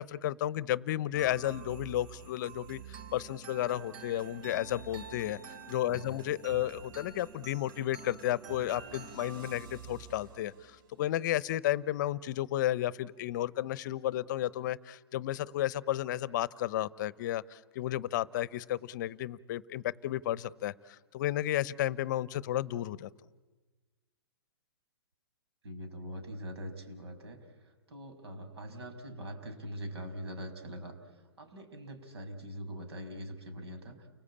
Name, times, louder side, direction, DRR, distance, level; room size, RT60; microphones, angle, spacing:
voice 1, 0.0-23.1, left 13 dB, 45° left, 20 dB, 0.8 m, -33 dB
sound 1, 1.1-10.8, right 5 dB, 50° right, 5.0 m, -48 dB
voice 2, 5.9-6.2 25.6-34.1, equal, 75° right, 6 dB, 6.1 m, -43 dB
30.0 x 19.5 x 8.7 m, 1.3 s
hypercardioid pair, 135°, 14 cm